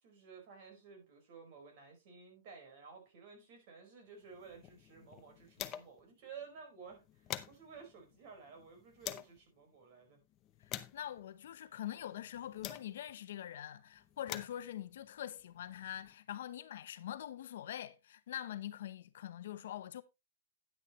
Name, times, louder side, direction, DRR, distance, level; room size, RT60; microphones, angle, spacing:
voice 1, 0.0-10.2, right 5 dB, 40° right, 4.9 m, -54 dB
sound 1, 4.3-6.1 6.4-6.5 6.9-9.4 10.0-13.2 13.9-16.1, left 12 dB, 25° left, 0.7 m, -48 dB
voice 2, 10.6-20.0, left 11 dB, 65° left, 0.8 m, -44 dB
10.0 x 9.7 x 3.1 m
supercardioid pair, 170°, 0 cm